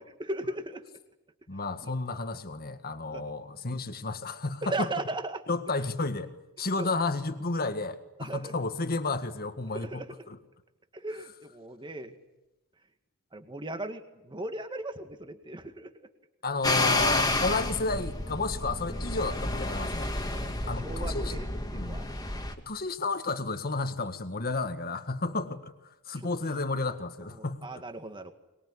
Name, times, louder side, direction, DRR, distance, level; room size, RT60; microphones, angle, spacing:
voice 1, 0.2-0.8 1.8-2.0 3.1-3.2 4.6-5.4 6.8-6.9 8.2-8.5 9.7-10.1 10.9-12.2 13.3-15.9 17.2-17.4 20.2-22.1 25.2-25.3 27.6-28.3, right 2 dB, 20° right, 7 dB, 2.0 m, -37 dB
voice 2, 1.5-4.9 5.5-10.4 16.4-20.1 20.7-21.4 21.7-22.0 22.6-27.8, left 3 dB, 45° left, 9 dB, 1.8 m, -32 dB
sound 1, 16.6-22.5, left 2 dB, 15° left, 2.1 m, -30 dB
23.5 x 21.5 x 9.9 m, 0.98 s
head